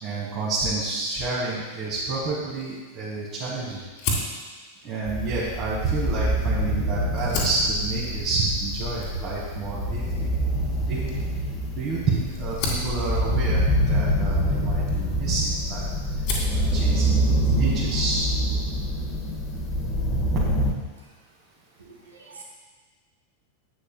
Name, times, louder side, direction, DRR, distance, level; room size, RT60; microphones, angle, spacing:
voice 1, 0.0-3.8 4.8-10.3 10.8-11.2 11.8-15.9 16.5-18.2, right 3 dB, 35° right, -8 dB, 2.0 m, -29 dB
Fire, 3.9-6.6 7.0-15.7 16.0-16.6, left 2 dB, 45° left, 2.0 m, -34 dB
sound 1, 5.1-20.7, equal, 25° left, 1.6 m, -25 dB
voice 2, 21.8-22.4, right 4 dB, 75° right, -1 dB, 1.8 m, -46 dB
11.0 x 8.5 x 2.3 m, 1.3 s
figure-of-eight pair, 90°, 0 cm